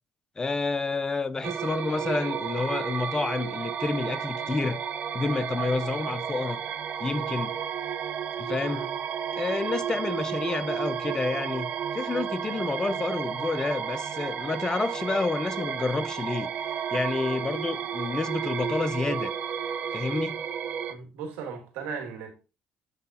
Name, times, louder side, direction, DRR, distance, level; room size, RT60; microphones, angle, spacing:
voice 1, 0.4-4.8 5.1-6.6 7.0-7.5 8.4-8.8 9.3-16.5 16.9-19.3 19.9-20.4, left 3 dB, 20° left, 0.6 m, -29 dB
sound 1, 1.4-20.9, right 8 dB, 55° right, 0.8 m, -32 dB
voice 2, 20.9-22.3, right 5 dB, 90° right, 1.9 m, -37 dB
7.9 x 3.9 x 4.2 m
cardioid pair, 95°, 3 cm